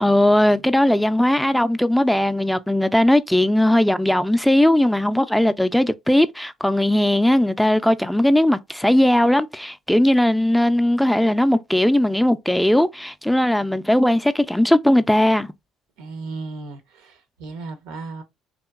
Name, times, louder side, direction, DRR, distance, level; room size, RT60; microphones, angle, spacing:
voice 1, 0.0-15.5, left 1 dB, 5° left, 0.3 m, -18 dB
voice 2, 16.0-18.2, right 3 dB, 85° right, 0.7 m, -35 dB
2.9 x 2.5 x 2.3 m
supercardioid pair, 70°, 0 cm